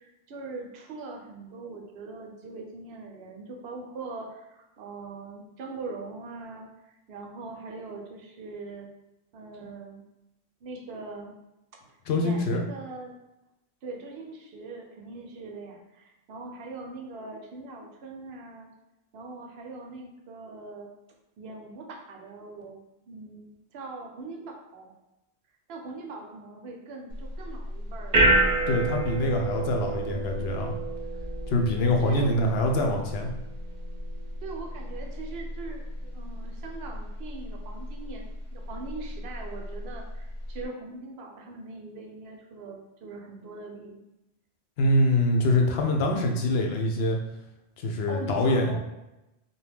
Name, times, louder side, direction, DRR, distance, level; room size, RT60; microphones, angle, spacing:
voice 1, 0.0-8.9 9.3-10.0 10.6-11.3 11.8-13.1 13.8-18.7 19.1-20.9 21.4-24.9 25.7-28.3 32.0-32.3 34.4-44.0 48.1-48.8, right 3 dB, 70° right, 1 dB, 0.8 m, -41 dB
voice 2, 12.1-12.6 28.7-30.7 31.5-33.3 44.8-47.2 47.8-48.8, left 1 dB, 70° left, 2 dB, 0.8 m, -24 dB
sound 1, 27.1-40.6, right 2 dB, 45° right, 0.6 m, -30 dB
2.8 x 2.2 x 3.3 m, 0.93 s
omnidirectional pair, 1.1 m